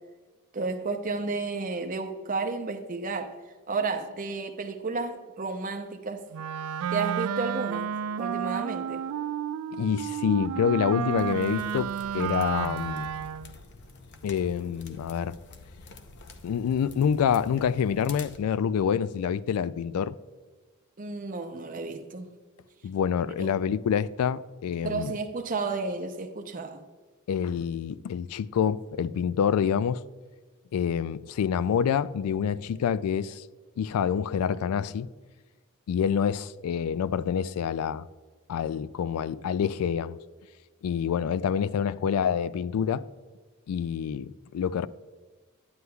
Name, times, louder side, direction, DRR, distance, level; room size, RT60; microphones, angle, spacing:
voice 1, 0.5-3.4 3.7-6.2 6.9-7.9 8.2-9.0 21.0-22.3 23.4-23.6 24.8-26.8, right 3 dB, 35° right, 0.6 m, -32 dB
Wind instrument woodwind instrument, 6.3-13.6, right 9 dB, 80° right, 0.3 m, -31 dB
voice 2, 9.7-13.1 14.2-15.4 16.4-20.2 22.8-25.1 27.3-30.0 30.7-33.4 33.8-35.1 35.9-38.0 38.5-40.2 40.8-43.0 43.7-44.9, left 7 dB, 80° left, 0.3 m, -27 dB
sound 1, 11.1-18.4, left 3 dB, 50° left, 0.7 m, -48 dB
9.5 x 9.5 x 2.3 m
head